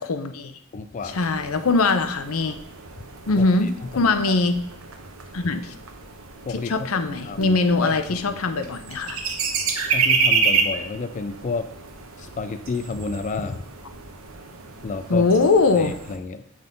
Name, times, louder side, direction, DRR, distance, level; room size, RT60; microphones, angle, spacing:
voice 1, 0.0-0.6 1.0-2.6 3.3-4.6 5.3-5.7 6.5-9.2 15.1-16.0, left 3 dB, 90° left, 9 dB, 0.7 m, -22 dB
voice 2, 0.7-1.2 3.4-4.1 5.4-5.5 6.5-6.9 7.3-8.4 9.9-11.7 12.2-13.6 14.8-15.3 15.8-16.4, left 4 dB, 35° left, 9 dB, 0.4 m, -31 dB
sound 1, 1.0-16.2, right 5 dB, 80° right, 1.0 m, -29 dB
7.9 x 3.7 x 5.2 m, 0.71 s
head